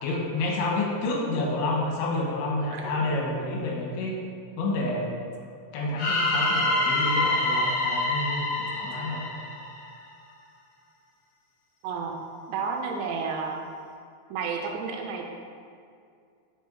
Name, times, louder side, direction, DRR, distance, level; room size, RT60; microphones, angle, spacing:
voice 1, 0.0-4.2 4.6-5.1 5.7-9.2, left 2 dB, 85° left, -2 dB, 3.6 m, -29 dB
voice 2, 2.7-3.3 11.8-12.2 12.5-13.6 14.3-15.2, right 5 dB, 85° right, 1 dB, 2.8 m, -31 dB
sound 1, 6.0-10.0, left 2 dB, 65° left, 2.4 m, -26 dB
8.3 x 5.1 x 3.9 m, 2.3 s
omnidirectional pair, 5.3 m